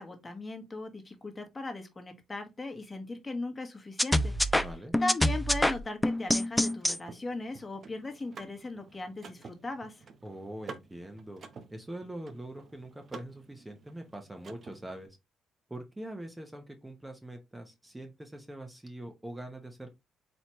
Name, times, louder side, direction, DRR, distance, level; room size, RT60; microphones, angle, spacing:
voice 1, 0.0-4.7 5.0-10.0, left 2 dB, 25° left, 1.2 m, -38 dB
sound 1, 4.0-7.0, left 1 dB, 5° left, 0.4 m, -26 dB
voice 2, 4.6-5.0 10.2-11.4 11.7-15.2 15.7-19.9, right 1 dB, 10° right, 0.9 m, -43 dB
Car / Mechanisms, 6.1-15.1, right 5 dB, 50° right, 0.8 m, -50 dB
4.3 x 3.2 x 3.0 m
cardioid pair, 90°, 0 cm